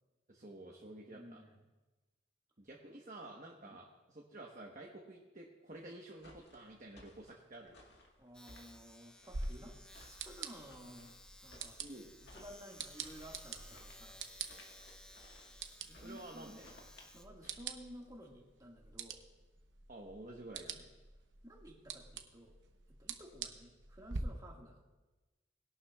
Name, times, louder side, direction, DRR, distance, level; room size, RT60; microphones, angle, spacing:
voice 1, 0.3-1.4 2.6-7.8 11.8-12.1 16.0-16.7 19.9-20.9, right 1 dB, 40° right, -1 dB, 1.2 m, -51 dB
voice 2, 1.1-1.6 3.6-3.8 8.2-11.1 11.4-11.8 12.2-14.2 15.9-16.8 17.1-19.2 20.7-20.9 21.4-22.6 22.9-24.8, equal, 20° right, -1 dB, 1.8 m, -54 dB
sound 1, 6.2-18.2, left 2 dB, 60° left, 2.1 m, -61 dB
Domestic sounds home sounds, 8.3-18.7, left 1 dB, 5° left, 0.6 m, -58 dB
sound 2, 9.3-24.2, right 5 dB, 70° right, 0.9 m, -48 dB
20.5 x 11.5 x 2.4 m, 1.2 s
head